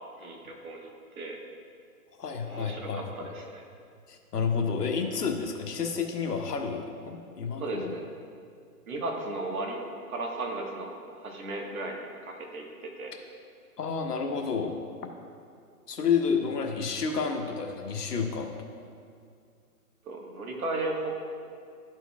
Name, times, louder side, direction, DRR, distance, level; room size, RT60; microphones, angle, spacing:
voice 1, 0.2-0.9 1.2-1.4 2.5-3.6 7.6-8.0 8.9-9.8 10.1-13.1 20.0-21.1, right 2 dB, 65° right, 0 dB, 1.5 m, -35 dB
voice 2, 2.2-3.0 4.1-7.9 13.8-14.8 15.9-18.6, left 5 dB, 90° left, 3 dB, 1.2 m, -30 dB
12.5 x 4.5 x 2.3 m, 2.3 s
hypercardioid pair, 165°, 46 cm